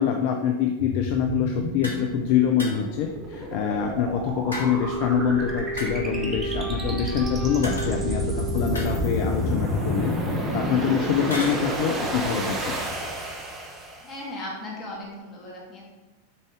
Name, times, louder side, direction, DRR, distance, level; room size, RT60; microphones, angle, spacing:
voice 1, 0.0-10.1 10.5-12.8, left 8 dB, 45° left, 4 dB, 0.5 m, -25 dB
sound 1, 0.8-14.2, equal, 20° right, 1.2 m, -30 dB
sound 2, 1.8-2.1 2.6-3.1 4.5-5.1 5.8-6.2 7.6-8.3 8.7-9.5 11.3-11.6, left 1 dB, 80° left, 1.4 m, -36 dB
Wind instrument woodwind instrument, 4.5-9.6, right 3 dB, 5° left, 2.0 m, -34 dB
voice 2, 14.0-15.8, left 1 dB, 25° left, -3 dB, 2.3 m, -37 dB
7.0 x 4.1 x 4.8 m, 1.2 s
figure-of-eight pair, 90°, 0 cm